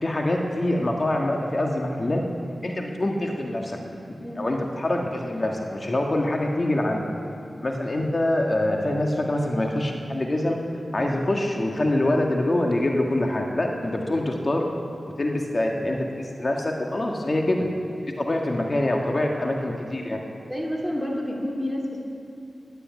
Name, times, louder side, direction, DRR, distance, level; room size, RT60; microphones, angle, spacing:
voice 1, 0.0-2.2 2.6-3.8 4.3-7.1 7.6-10.6 10.9-14.7 15.2-17.7 18.2-20.2, left 1 dB, 40° left, 1 dB, 1.6 m, -25 dB
voice 2, 20.5-22.1, left 1 dB, 10° left, -1 dB, 2.3 m, -29 dB
14.5 x 10.0 x 9.5 m, 2.6 s
cardioid pair, 55°, 0 cm